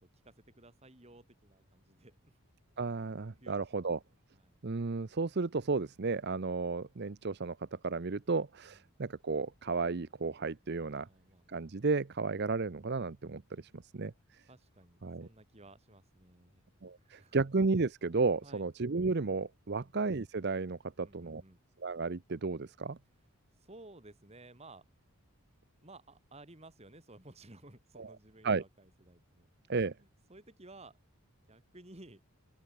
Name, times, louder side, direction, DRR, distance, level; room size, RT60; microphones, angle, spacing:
voice 1, 0.0-2.4 3.0-3.1 3.4-3.9 4.3-4.6 10.8-11.7 14.5-16.6 17.0-17.4 18.4-18.7 19.7-19.9 21.0-21.6 23.6-24.9 25.8-31.0 31.5-32.2, right 2 dB, 30° right, 2.3 m, -56 dB
voice 2, 2.8-4.0 4.6-7.6 7.8-11.1 11.5-14.1 15.0-15.3 16.8-21.4 21.8-23.0 28.0-28.1 28.4-28.6 29.7-29.9, right 4 dB, 50° right, 0.7 m, -33 dB
open air
head